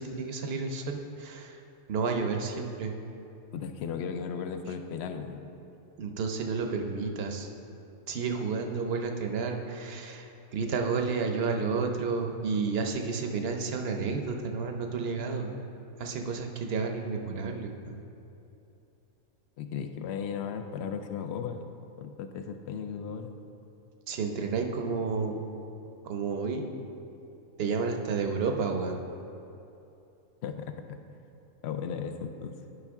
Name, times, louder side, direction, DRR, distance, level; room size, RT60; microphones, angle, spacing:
voice 1, 0.0-1.6 1.9-2.9 6.0-7.5 8.1-15.5 16.0-18.0 24.1-25.4 26.0-26.7 27.6-29.0, right 4 dB, 55° right, 4 dB, 0.8 m, -31 dB
voice 2, 3.5-5.5 19.6-21.6 22.0-23.3 30.4-30.8 31.6-32.5, left 7 dB, 65° left, 7 dB, 0.8 m, -36 dB
11.5 x 5.5 x 3.5 m, 2.9 s
omnidirectional pair, 1.3 m